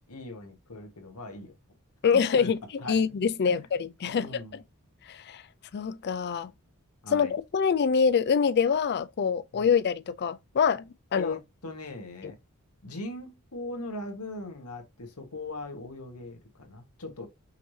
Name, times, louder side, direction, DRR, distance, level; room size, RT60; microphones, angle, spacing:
voice 1, 0.1-1.5 2.1-2.5 2.8-3.0 3.4-3.6 4.0-4.6 7.0-7.3 9.5-9.7 11.1-12.4 12.8-17.3, left 2 dB, 85° left, 1.4 m, -40 dB
voice 2, 2.0-2.6 2.9-4.6 5.1-5.4 5.7-6.5 7.1-11.3 12.2-12.3, left 6 dB, 50° left, 0.4 m, -25 dB
5.6 x 3.2 x 2.7 m
head